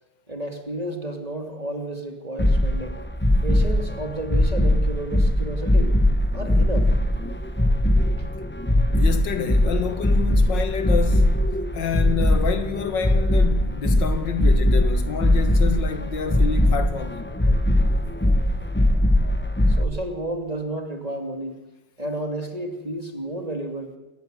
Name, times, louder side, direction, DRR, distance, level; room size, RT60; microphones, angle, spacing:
voice 1, 0.3-3.0 3.4-6.0 6.3-6.9 8.2-8.3 19.7-21.6 22.0-24.0, right 1 dB, 20° right, 2.7 m, -31 dB
sound 1, 2.4-19.8, left 1 dB, 10° left, 0.9 m, -20 dB
voice 2, 9.0-11.3 11.7-17.4, left 7 dB, 85° left, 2.3 m, -28 dB
22.5 x 19.5 x 7.9 m
omnidirectional pair, 1.9 m